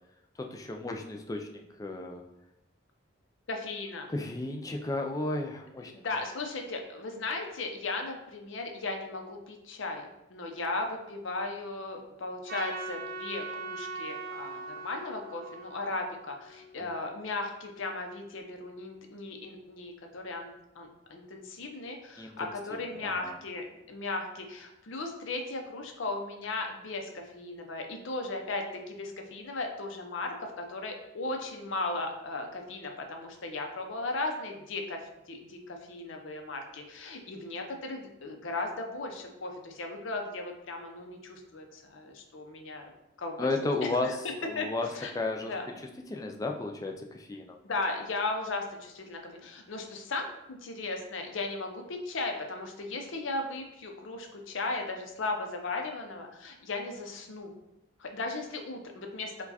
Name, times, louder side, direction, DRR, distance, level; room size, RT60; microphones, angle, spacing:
voice 1, 0.4-2.2 4.1-6.0 16.8-16.9 22.2-23.4 43.4-47.6, left 2 dB, 15° left, 3 dB, 0.3 m, -34 dB
voice 2, 3.5-4.1 5.8-20.5 20.8-35.0 35.3-42.9 43.2-43.5 44.0-44.1 44.6-44.7 44.9-45.1 45.5-45.7 47.6-57.5 58.0-59.3, left 3 dB, 65° left, 3 dB, 0.6 m, -36 dB
Trumpet, 12.5-16.9, right 3 dB, 45° right, 0.5 m, -40 dB
4.6 x 2.3 x 4.0 m, 0.88 s
head